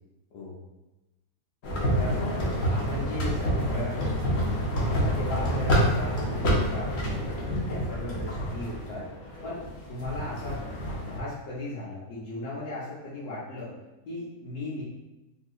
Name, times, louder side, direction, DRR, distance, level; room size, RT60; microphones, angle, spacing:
sound 1, 1.6-11.2, equal, 60° left, 1.2 m, -28 dB
voice 1, 2.0-4.4 4.9-9.0 9.4-9.6 9.9-10.6 11.0-13.7 14.1-14.8, left 2 dB, 85° left, -9 dB, 1.4 m, -36 dB
4.4 x 2.8 x 2.3 m, 1.0 s
omnidirectional pair, 1.6 m